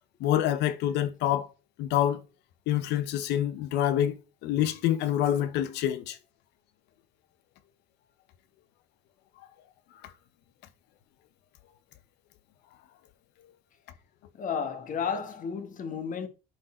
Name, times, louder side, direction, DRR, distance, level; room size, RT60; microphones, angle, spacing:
voice 1, 0.2-1.5 1.8-2.2 2.7-6.2, left 11 dB, 90° left, 1.0 m, -26 dB
voice 2, 14.4-16.3, left 6 dB, 50° left, 1.5 m, -32 dB
10.5 x 4.0 x 4.4 m
cardioid pair, 110°, 17 cm